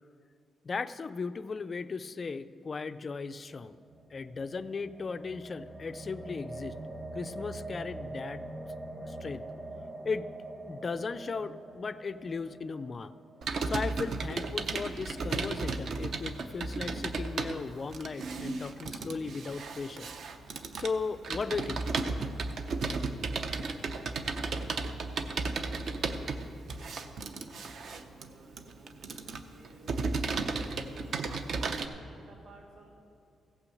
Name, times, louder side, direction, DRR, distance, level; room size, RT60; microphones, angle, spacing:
voice 1, 0.6-3.8 4.1-6.8 7.1-8.5 9.1-9.5 10.0-10.3 10.7-13.1 13.6-20.1 20.7-21.8, left 4 dB, 30° left, 12 dB, 0.3 m, -36 dB
sound 1, 3.7-13.9, right 1 dB, 20° right, 1.0 m, -44 dB
Computer keyboard, 13.4-31.9, right 4 dB, 50° right, 0.7 m, -34 dB
voice 2, 23.6-32.9, right 1 dB, 75° right, -2 dB, 3.1 m, -56 dB
16.0 x 6.0 x 7.7 m, 2.6 s
wide cardioid pair, 170°, 0 cm